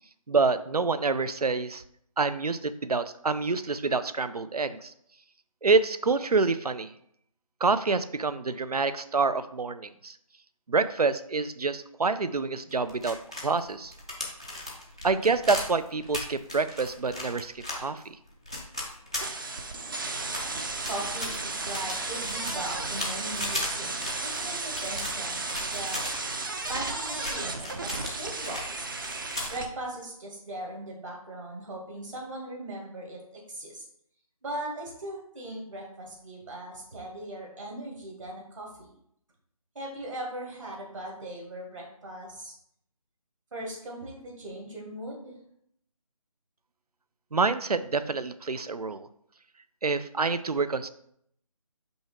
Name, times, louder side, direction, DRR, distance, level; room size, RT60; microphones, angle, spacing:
voice 1, 0.3-1.8 2.2-4.9 5.6-6.9 7.6-10.2 10.7-13.9 15.0-18.2 47.3-49.1 49.8-50.9, right 4 dB, 85° right, 13 dB, 0.6 m, -27 dB
sound 1, 12.7-19.8 20.2-26.1 26.6-28.7 29.0-29.6, left 1 dB, 10° left, 0.4 m, -37 dB
sound 2, 19.2-29.6, right 3 dB, 35° right, 0.6 m, -34 dB
voice 2, 20.8-26.2 26.7-28.9 29.5-33.8 34.4-38.9 39.7-42.6 43.5-45.3, right 1 dB, 60° right, -1 dB, 2.1 m, -39 dB
5.5 x 4.8 x 4.4 m, 0.70 s
figure-of-eight pair, 160°, 19 cm